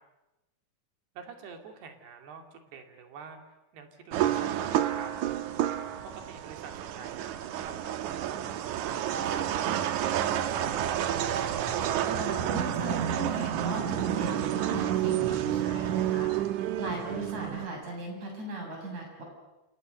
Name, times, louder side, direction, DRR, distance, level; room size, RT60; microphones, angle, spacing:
voice 1, 1.2-5.1 6.0-11.1, right 5 dB, 90° right, 5 dB, 4.6 m, -47 dB
sound 1, 4.1-17.7, right 11 dB, 70° right, 2.0 m, -30 dB
voice 2, 12.0-19.2, right 1 dB, 45° right, 1 dB, 8.9 m, -38 dB
28.5 x 28.5 x 6.8 m, 1.0 s
omnidirectional pair, 4.5 m